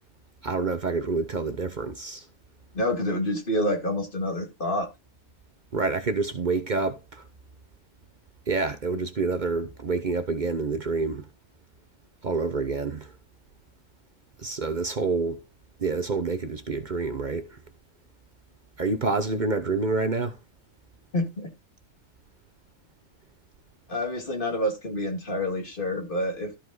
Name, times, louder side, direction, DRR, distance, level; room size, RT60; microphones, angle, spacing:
voice 1, 0.4-2.3 5.7-7.2 8.5-11.2 12.2-13.1 14.4-15.4 15.8-17.5 18.8-20.4, right 3 dB, 45° right, 1.0 m, -27 dB
voice 2, 2.7-4.9 21.1-21.5 23.9-26.5, left 1 dB, 50° left, 2.4 m, -28 dB
13.0 x 5.2 x 3.9 m
omnidirectional pair, 1.2 m